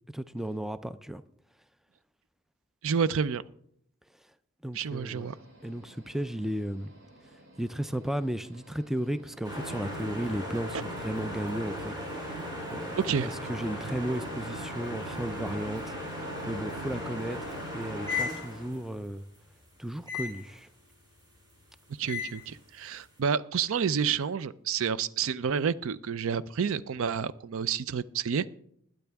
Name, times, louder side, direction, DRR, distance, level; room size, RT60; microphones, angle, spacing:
voice 1, 0.1-1.2 4.6-5.3 5.6-6.9 7.6-12.4 12.7-16.0 16.5-19.2 19.8-20.7, right 1 dB, ahead, 0.4 m, -34 dB
voice 2, 2.8-3.4 4.7-5.3 10.7-10.8 13.0-13.3 22.0-28.5, right 6 dB, 65° right, 0.5 m, -29 dB
sound 1, 4.8-18.7, equal, 80° right, 5.7 m, -55 dB
sound 2, 9.4-18.9 20.1-20.5 22.1-22.5, left 1 dB, 20° right, 4.2 m, -36 dB
20.5 x 9.0 x 3.5 m
head